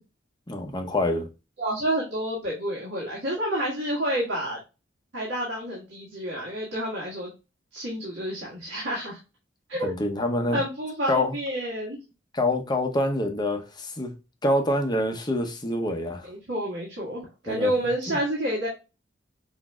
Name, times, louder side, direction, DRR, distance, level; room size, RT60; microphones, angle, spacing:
voice 1, 0.5-1.3 9.8-10.6 11.1-11.4 12.3-14.1 14.4-16.3 17.5-17.7 18.1-18.2, left 1 dB, 25° left, 0.7 m, -26 dB
voice 2, 1.6-4.6 5.1-7.3 7.7-9.2 9.7-9.9 10.5-12.0 16.2-18.7, right 1 dB, 65° right, 1.5 m, -29 dB
6.0 x 2.6 x 2.2 m
head